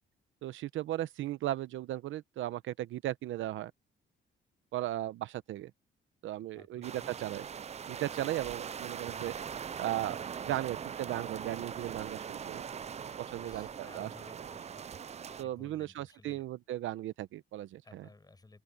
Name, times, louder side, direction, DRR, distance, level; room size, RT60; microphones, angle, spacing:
voice 1, 0.4-3.7 4.7-5.7 6.2-7.4 7.9-9.3 9.8-10.2 10.4-12.6 13.2-14.1 15.4-18.0, right 14 dB, 80° right, 0.8 m, -36 dB
voice 2, 6.5-7.2 13.3-14.9 15.3-16.5 17.8-18.6, left 2 dB, 20° left, 7.6 m, -57 dB
sound 1, 6.8-15.4, right 7 dB, 35° right, 0.5 m, -41 dB
open air
cardioid pair, 90°, 20 cm